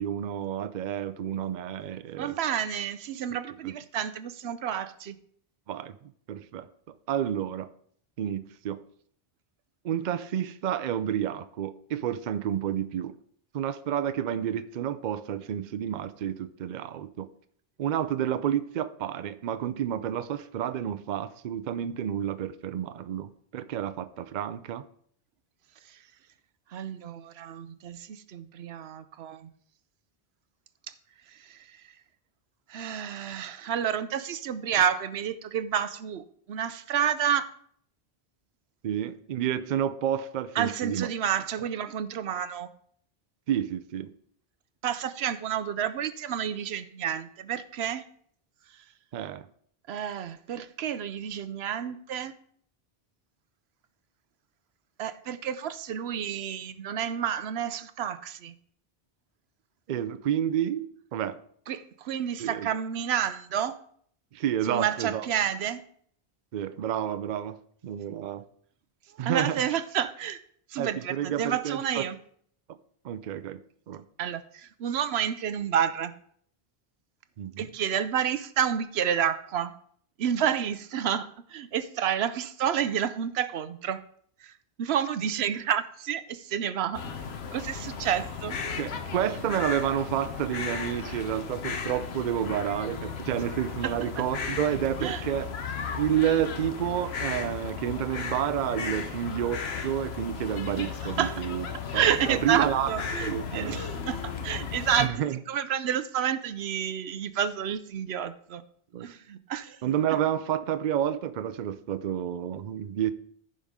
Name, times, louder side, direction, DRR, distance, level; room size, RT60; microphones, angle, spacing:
voice 1, 0.0-2.4 3.6-3.7 5.7-6.0 6.3-6.7 7.1-7.7 8.2-8.8 9.8-13.1 13.5-17.3 17.8-24.8 38.8-41.1 43.5-44.1 49.1-49.5 59.9-61.4 62.4-62.7 64.3-65.3 66.5-67.6 67.8-68.4 69.2-69.6 70.8-72.1 73.0-73.6 73.9-74.0 77.4-77.7 88.8-95.5 96.0-101.7 101.9-102.9 103.2-103.9 105.0-105.4 108.9-109.1 109.8-113.1, right 10 dB, 55° right, 0.6 m, -30 dB
voice 2, 2.2-5.2 26.7-29.5 31.4-31.8 32.7-37.5 40.6-42.7 44.8-48.0 49.9-52.3 55.0-58.5 61.7-63.8 64.7-65.8 69.2-70.4 70.7-72.1 74.2-76.1 77.6-79.8 80.2-84.0 84.4-84.5 84.8-87.0 87.5-88.6 95.0-95.2 101.0-101.4 101.9-105.1 105.5-108.6 109.0-109.8, right 9 dB, 85° right, 0.9 m, -30 dB
sound 1, 86.9-105.1, left 6 dB, 80° left, 1.1 m, -35 dB
14.5 x 5.3 x 3.6 m
omnidirectional pair, 1.0 m